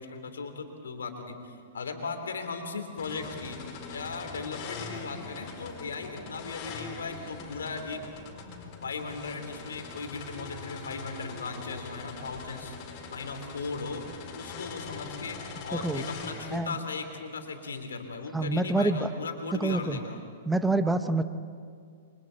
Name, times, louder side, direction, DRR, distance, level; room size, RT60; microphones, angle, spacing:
voice 1, 0.0-3.6 3.9-8.0 8.8-12.8 13.1-14.0 14.4-20.2, left 4 dB, 75° left, 5 dB, 2.9 m, -37 dB
sound 1, 3.0-16.6, left 5 dB, 40° left, 4.7 m, -42 dB
voice 2, 15.7-16.0 16.5-16.7 18.3-19.1 19.6-20.0 20.5-21.2, right 2 dB, 5° right, 10 dB, 1.0 m, -26 dB
28.5 x 24.0 x 4.5 m, 2.2 s
hypercardioid pair, 110°, 0 cm